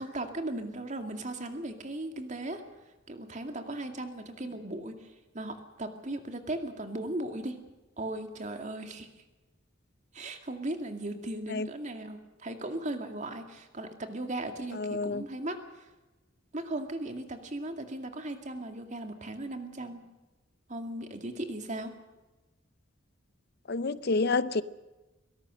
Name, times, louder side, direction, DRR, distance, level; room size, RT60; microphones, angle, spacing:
voice 1, 0.0-2.6 3.1-7.6 8.0-9.1 10.1-15.9 16.5-20.1 20.7-21.9, right 1 dB, 40° right, 2.3 m, -37 dB
voice 2, 14.8-15.2 23.7-24.6, left 3 dB, 55° left, 0.6 m, -28 dB
23.5 x 18.0 x 6.5 m
head